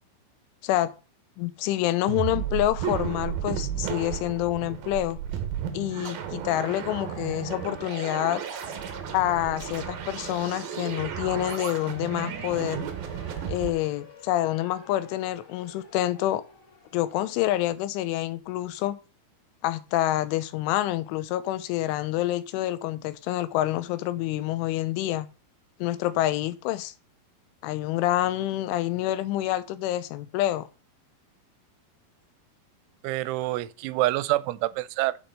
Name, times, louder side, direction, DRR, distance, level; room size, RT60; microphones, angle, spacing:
voice 1, 1.4-5.2 5.7-8.4 9.1-12.9 13.5-16.4 16.9-19.0 19.6-25.3 25.8-26.9 27.6-30.7, left 14 dB, 90° left, 3.3 m, -27 dB
sound 1, 2.1-13.7, right 9 dB, 65° right, 2.8 m, -33 dB
Siren, 5.5-17.6, left 6 dB, 45° left, 4.6 m, -49 dB
voice 2, 33.0-35.2, right 17 dB, 85° right, 3.1 m, -27 dB
8.1 x 6.8 x 6.7 m
omnidirectional pair, 5.4 m